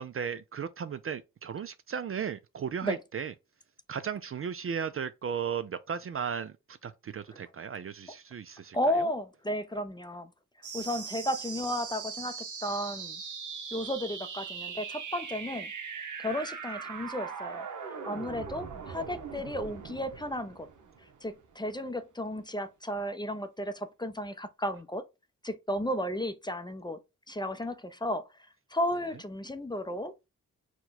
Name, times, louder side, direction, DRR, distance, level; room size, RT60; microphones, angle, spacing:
voice 1, 0.0-3.3 3.9-9.1, right 7 dB, 45° right, 0.4 m, -36 dB
voice 2, 8.7-10.3 10.7-13.2 13.7-15.7 16.2-17.7 18.1-20.7 21.2-25.0 25.4-27.0 27.3-28.3 28.7-30.1, equal, 15° left, 0.5 m, -33 dB
sound 1, 10.6-21.6, right 6 dB, 65° right, 1.0 m, -40 dB
4.5 x 2.2 x 4.0 m
cardioid pair, 65°, 33 cm